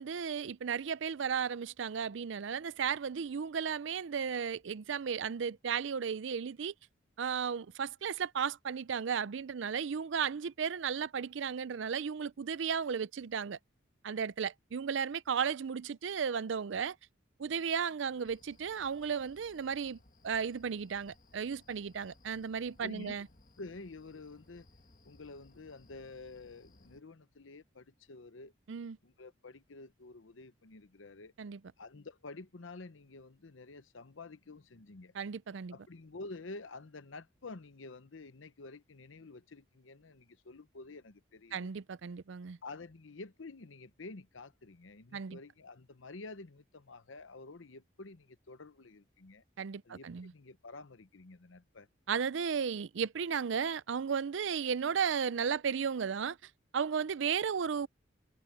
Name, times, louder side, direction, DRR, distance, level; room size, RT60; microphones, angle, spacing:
voice 1, 0.0-6.7 7.2-13.6 14.0-17.0 17.4-20.0 20.2-23.3 28.7-29.0 31.4-31.6 35.2-35.7 41.5-42.6 45.1-45.4 49.6-50.3 52.1-56.4 56.7-57.9, right 6 dB, 70° right, 0.5 m, -34 dB
sound 1, 18.2-27.0, left 2 dB, 40° left, 1.6 m, -63 dB
voice 2, 22.8-23.1 23.6-24.7 25.0-28.5 29.0-31.3 31.8-35.1 35.7-41.7 42.6-49.4 49.8-51.9, left 3 dB, 80° left, 0.9 m, -49 dB
head